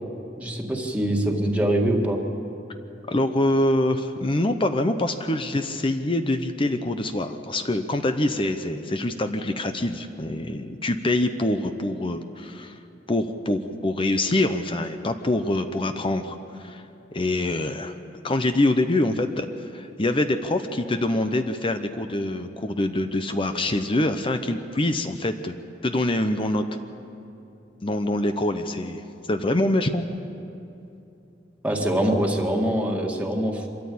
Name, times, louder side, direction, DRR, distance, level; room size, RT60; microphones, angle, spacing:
voice 1, 0.4-2.2 31.6-33.7, right 1 dB, 10° right, 0 dB, 2.0 m, -24 dB
voice 2, 3.1-12.8 13.1-16.8 17.1-17.9 18.2-19.5 19.7-25.6 25.8-26.6 27.8-29.0 29.3-30.0, left 1 dB, 30° left, 8 dB, 0.8 m, -25 dB
25.5 x 13.5 x 8.6 m, 2.8 s
head